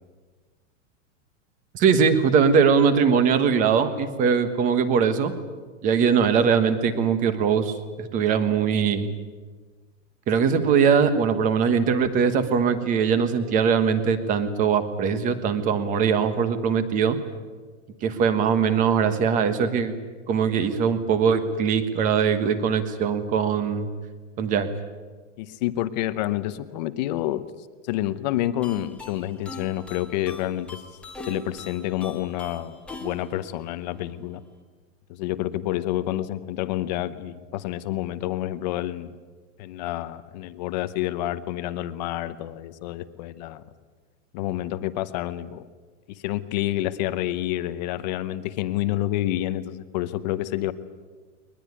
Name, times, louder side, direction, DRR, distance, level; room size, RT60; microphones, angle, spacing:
voice 1, 1.7-5.3 5.8-9.1 10.3-17.2 18.0-19.9 20.3-23.9 24.4-24.7, right 6 dB, 20° right, 11 dB, 1.4 m, -21 dB
voice 2, 25.4-27.4 27.8-30.8 31.3-34.4 35.1-39.2 39.6-43.6 44.3-45.6 46.2-50.7, left 14 dB, 35° left, 13 dB, 0.9 m, -28 dB
sound 1, 28.6-34.5, left 2 dB, 5° left, 1.5 m, -42 dB
21.5 x 20.5 x 9.7 m, 1.4 s
supercardioid pair, 170°, 38 cm